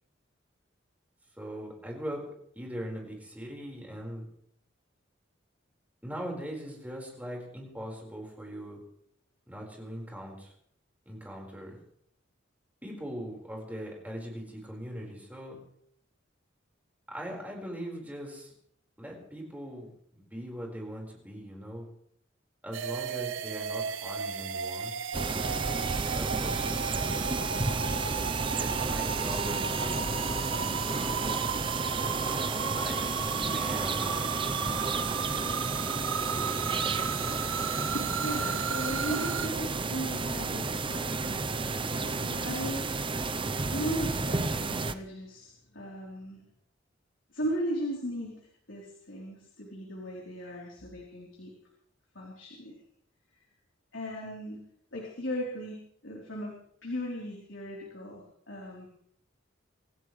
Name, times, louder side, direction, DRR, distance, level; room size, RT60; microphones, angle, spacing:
voice 1, 1.4-2.3 2.5-4.3 6.0-8.8 9.5-10.5 11.0-11.8 12.8-15.6 17.1-18.5 19.0-21.9 22.6-24.9 26.1-27.5 28.5-30.8 32.7-34.8, equal, 10° right, -1 dB, 4.8 m, -40 dB
sound 1, 22.7-39.5, right 7 dB, 85° right, 0.8 m, -34 dB
sound 2, 25.1-45.0, right 3 dB, 25° right, 0.7 m, -32 dB
voice 2, 37.9-43.3 43.7-46.5 47.3-48.4 48.7-51.5 52.1-52.8 53.9-54.6 54.9-58.9, equal, 75° left, -3 dB, 3.9 m, -37 dB
26.0 x 15.0 x 3.3 m, 0.67 s
head